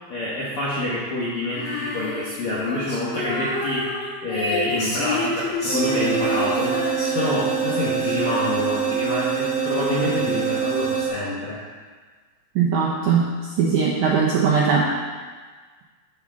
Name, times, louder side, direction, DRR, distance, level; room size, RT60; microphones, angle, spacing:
voice 1, 0.1-6.7 7.1-11.6, left 1 dB, 65° left, -8 dB, 1.3 m, -27 dB
Female singing, 1.5-8.8, left 2 dB, 85° left, 0.6 m, -29 dB
sound 1, 5.7-11.1, right 6 dB, 55° right, 0.7 m, -24 dB
voice 2, 12.5-13.3 13.6-14.9, right 6 dB, 80° right, -4 dB, 1.8 m, -19 dB
13.5 x 5.2 x 3.7 m, 1.5 s
omnidirectional pair, 4.5 m